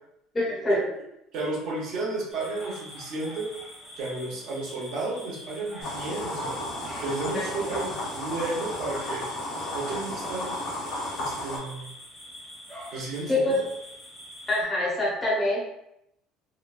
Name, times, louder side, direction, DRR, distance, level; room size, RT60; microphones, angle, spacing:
voice 1, 0.3-0.8 7.3-7.4 13.3-13.6 14.5-15.6, left 1 dB, 15° left, -6 dB, 0.7 m, -25 dB
voice 2, 1.3-3.5 4.0-6.5 7.0-9.3 9.7-10.6 11.2-11.9 12.9-13.6, right 2 dB, 60° right, -5 dB, 0.7 m, -32 dB
sound 1, 2.3-14.6, equal, 15° right, 0.8 m, -44 dB
sound 2, 5.8-11.6, left 1 dB, 55° left, 1.0 m, -33 dB
2.9 x 2.1 x 2.4 m, 0.80 s
cardioid pair, 150°, 0 cm